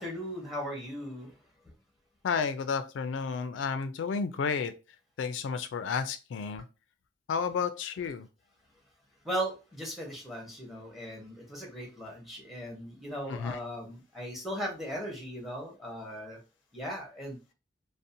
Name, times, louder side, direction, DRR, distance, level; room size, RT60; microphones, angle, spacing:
voice 1, 0.0-1.4 9.2-16.4 16.7-17.4, equal, ahead, -1 dB, 0.8 m, -38 dB
voice 2, 2.2-4.7 5.2-6.6 7.3-8.3 13.3-13.6, left 5 dB, 85° left, 10 dB, 0.3 m, -31 dB
2.6 x 2.0 x 2.7 m, 0.30 s
head